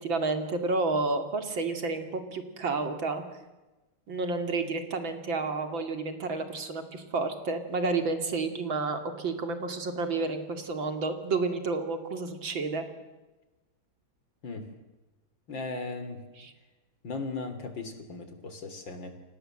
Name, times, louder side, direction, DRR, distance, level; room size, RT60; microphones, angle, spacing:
voice 1, 0.0-3.2 4.1-12.9, right 3 dB, 65° right, 7 dB, 3.3 m, -30 dB
voice 2, 15.5-16.2 17.0-19.2, left 3 dB, 60° left, 9 dB, 3.8 m, -37 dB
30.0 x 25.0 x 7.8 m, 1.1 s
omnidirectional pair, 2.3 m